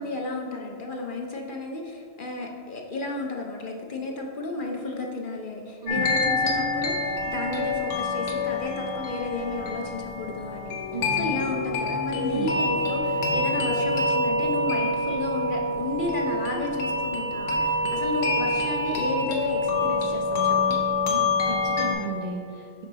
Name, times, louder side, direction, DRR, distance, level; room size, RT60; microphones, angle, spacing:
voice 1, 0.0-10.7 11.1-20.8, left 2 dB, 55° left, 1 dB, 0.6 m, -32 dB
sound 1, 5.9-21.9, left 2 dB, 90° left, 1.2 m, -26 dB
voice 2, 10.9-11.3 12.2-12.5 21.1-21.2 21.5-22.7, right 4 dB, 55° right, -1 dB, 0.5 m, -34 dB
6.0 x 4.5 x 3.9 m, 2.4 s
omnidirectional pair, 1.2 m